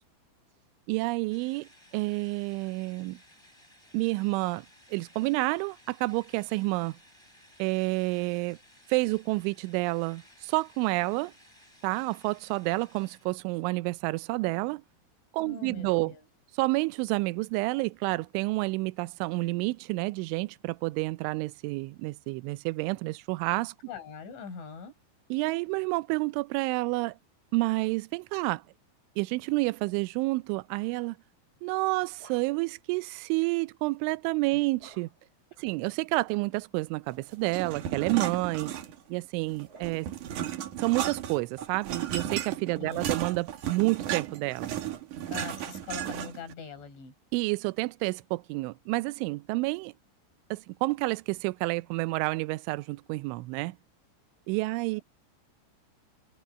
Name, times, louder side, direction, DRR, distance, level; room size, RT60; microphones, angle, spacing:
voice 1, 0.9-3.2 3.9-4.7 4.9-7.0 7.6-8.6 8.9-11.3 11.8-14.8 15.3-16.1 16.6-23.7 25.3-27.2 27.5-28.6 29.2-31.2 31.6-35.1 35.6-38.7 39.1-40.1 40.8-44.8 47.3-49.9 50.5-53.8 54.5-55.0, right 23 dB, 85° right, 3.0 m, -29 dB
sound 1, 1.3-13.3, equal, 5° left, 5.4 m, -58 dB
voice 2, 15.4-16.2 23.9-24.9 34.5-34.6 35.5-35.6 42.8-43.1 45.3-47.1, left 6 dB, 75° left, 8.0 m, -42 dB
sound 2, 31.6-32.8 34.8-35.4 36.8-37.6 38.4-40.3, right 3 dB, 15° right, 4.2 m, -58 dB
sound 3, 37.5-39.2 39.5-46.5, right 10 dB, 60° right, 2.1 m, -34 dB
omnidirectional pair, 5.5 m